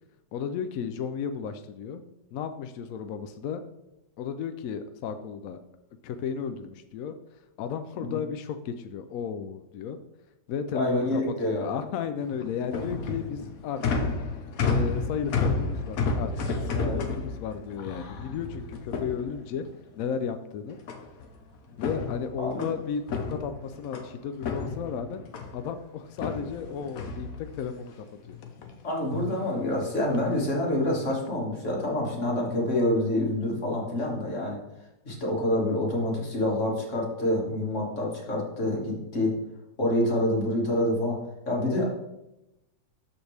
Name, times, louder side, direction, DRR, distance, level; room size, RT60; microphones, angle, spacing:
voice 1, 0.3-2.0 2.3-3.6 4.2-5.6 6.0-7.2 7.6-10.0 10.5-14.0 14.6-19.7 20.0-20.8 21.8-25.2 25.5-28.4, left 7 dB, 75° left, 8 dB, 0.8 m, -34 dB
voice 2, 10.7-11.7 16.7-17.0 22.4-22.7 28.8-34.6 35.0-39.3 39.8-41.9, left 1 dB, 40° left, -3 dB, 2.2 m, -27 dB
sound 1, 12.2-19.8 20.9-21.4 21.7-24.1 24.4-25.7 26.2-27.8 28.2-28.7 29.0-29.4 30.1-30.5 31.0-31.3, left 4 dB, 55° left, 1.1 m, -31 dB
12.5 x 4.3 x 3.4 m, 0.91 s
omnidirectional pair, 2.0 m